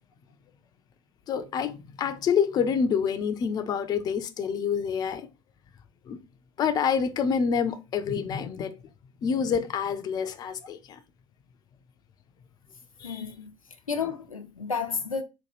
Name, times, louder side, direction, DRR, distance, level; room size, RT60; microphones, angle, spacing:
voice 1, 1.3-5.3 6.1-6.2 6.6-8.7 9.2-11.0 13.0-13.2, left 6 dB, 25° left, 0.4 m, -27 dB
voice 2, 13.0-13.5 13.9-15.2, left 5 dB, 85° left, 0.6 m, -31 dB
4.1 x 2.2 x 3.0 m
figure-of-eight pair, 85°, 17 cm